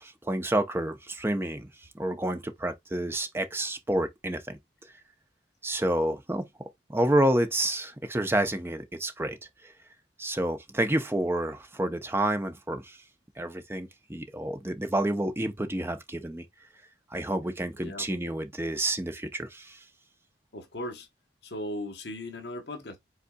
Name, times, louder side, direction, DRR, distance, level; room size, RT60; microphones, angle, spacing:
voice 1, 0.0-4.9 5.6-9.7 10.2-13.0 13.4-16.5 17.1-19.8, right 1 dB, 10° right, 0.6 m, -29 dB
voice 2, 17.8-18.4 20.5-21.1 21.4-23.0, left 1 dB, 60° left, 1.0 m, -38 dB
5.3 x 3.9 x 2.3 m
head